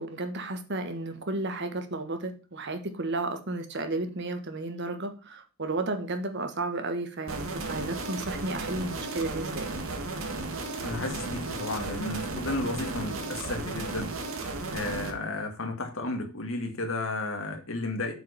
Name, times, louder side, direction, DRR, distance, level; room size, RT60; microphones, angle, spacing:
voice 1, 0.0-9.7, right 2 dB, 55° right, 1.4 m, -33 dB
sound 1, 7.3-15.1, right 3 dB, 70° right, 1.8 m, -34 dB
voice 2, 10.8-14.1 14.7-18.1, left 2 dB, 65° left, 2.0 m, -33 dB
7.5 x 5.0 x 6.9 m
head